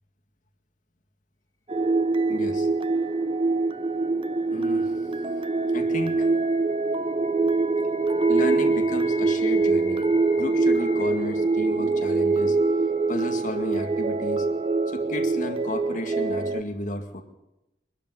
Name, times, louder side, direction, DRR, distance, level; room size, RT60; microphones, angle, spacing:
sound 1, 1.7-16.6, right 3 dB, 30° right, 0.8 m, -24 dB
voice 1, 2.3-2.7 4.5-5.0 5.7-6.3 8.3-10.1 10.3-12.6 13.1-14.5 14.9-17.2, left 1 dB, 50° left, 5 dB, 2.1 m, -33 dB
sound 2, 5.1-14.0, left 4 dB, 15° left, 2.1 m, -45 dB
24.0 x 12.0 x 9.7 m, 0.91 s
head